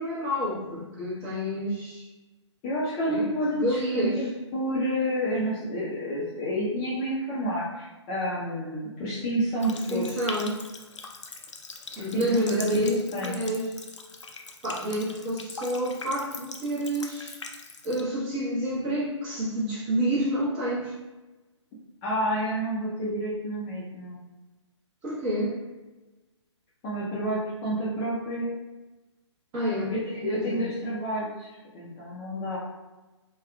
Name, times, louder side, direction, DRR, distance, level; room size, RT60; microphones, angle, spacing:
voice 1, 0.0-2.1 3.1-4.2 9.7-10.6 12.0-13.7 14.6-17.3 17.8-20.9 25.0-25.6 29.5-29.9 30.3-30.6, equal, 25° right, -7 dB, 1.0 m, -29 dB
voice 2, 2.6-10.1 12.1-13.4 22.0-24.2 26.8-28.5 30.0-32.6, equal, 20° left, -8 dB, 0.5 m, -29 dB
Water tap faucet, 9.6-18.0, left 4 dB, 75° left, 0.4 m, -41 dB
3.4 x 2.3 x 2.2 m, 1.1 s
figure-of-eight pair, 130°, 15 cm